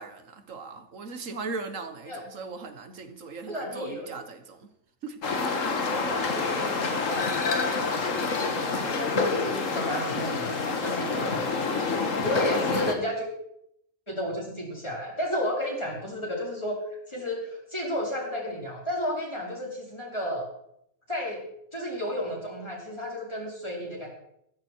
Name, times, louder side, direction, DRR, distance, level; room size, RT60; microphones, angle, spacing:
voice 1, 0.0-4.7 5.0-5.4 12.5-12.6, right 4 dB, 85° right, 9 dB, 1.8 m, -39 dB
voice 2, 3.5-4.1 5.8-11.5 12.2-13.3 14.1-16.8 17.1-20.5 21.1-21.4 21.7-24.1, equal, 20° left, -3 dB, 4.9 m, -33 dB
sound 1, 5.2-12.9, left 4 dB, 80° left, 2.0 m, -27 dB
14.5 x 14.0 x 4.7 m, 0.74 s
omnidirectional pair, 1.3 m